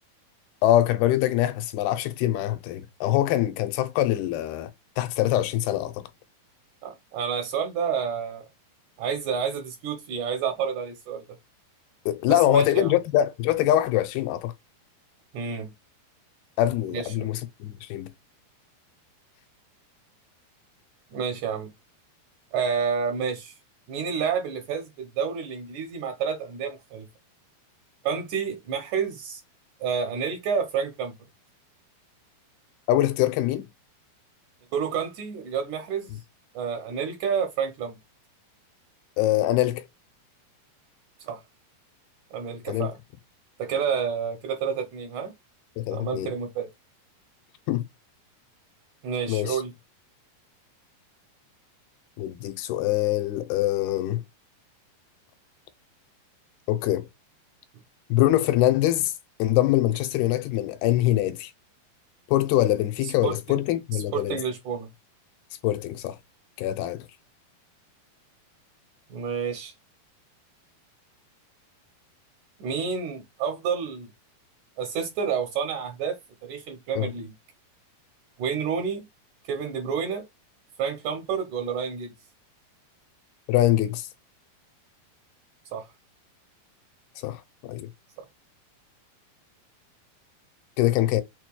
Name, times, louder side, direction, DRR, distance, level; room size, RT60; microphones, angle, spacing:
voice 1, 0.6-4.7 5.0-6.0 12.1-14.5 16.6-18.1 32.9-33.7 39.2-39.8 42.7-42.9 45.8-46.3 47.7-47.8 49.3-49.6 52.2-54.2 56.7-57.1 58.1-59.1 59.4-61.5 62.3-64.4 65.6-66.2 66.6-67.1 77.0-77.1 83.5-84.1 87.2-87.9 90.8-91.2, left 14 dB, 85° left, 2.5 m, -24 dB
voice 2, 6.8-8.4 9.0-11.2 12.3-12.9 15.3-15.7 16.9-17.3 21.1-21.7 22.5-23.5 23.9-27.1 28.0-29.4 29.8-31.1 34.7-36.1 36.5-38.0 41.2-41.4 42.3-43.0 43.6-45.3 45.9-46.7 49.0-49.7 63.0-63.4 64.1-64.9 69.1-69.7 72.6-74.1 74.8-77.3 78.4-79.1 79.5-80.3 80.8-82.1 85.7-85.9, right 6 dB, 80° right, 1.7 m, -29 dB
6.6 x 3.0 x 2.2 m
omnidirectional pair, 4.5 m